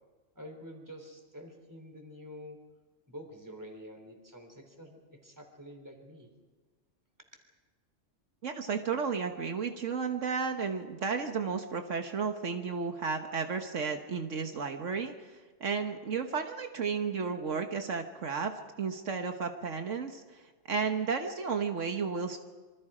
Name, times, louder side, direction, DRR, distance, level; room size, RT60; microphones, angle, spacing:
voice 1, 0.4-2.6 3.1-6.3, equal, 15° right, 4 dB, 3.7 m, -48 dB
voice 2, 8.4-20.4 20.7-22.4, right 5 dB, 75° right, 5 dB, 1.6 m, -33 dB
27.0 x 24.5 x 5.0 m, 1.3 s
omnidirectional pair, 1.3 m